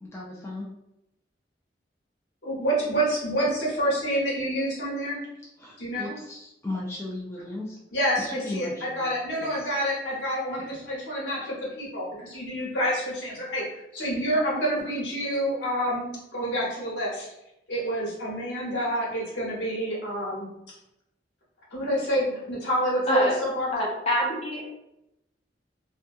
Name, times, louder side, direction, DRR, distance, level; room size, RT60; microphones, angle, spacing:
voice 1, 0.0-0.7 5.6-7.8 8.2-9.1 9.4-9.7, left 2 dB, 15° left, -4 dB, 0.3 m, -36 dB
voice 2, 2.4-5.2 5.8-6.1 7.9-17.3 17.7-20.5 21.7-23.7, equal, 75° left, -6 dB, 1.2 m, -28 dB
voice 3, 23.7-24.7, equal, 35° left, -5 dB, 0.7 m, -26 dB
2.6 x 2.2 x 2.6 m, 0.86 s
head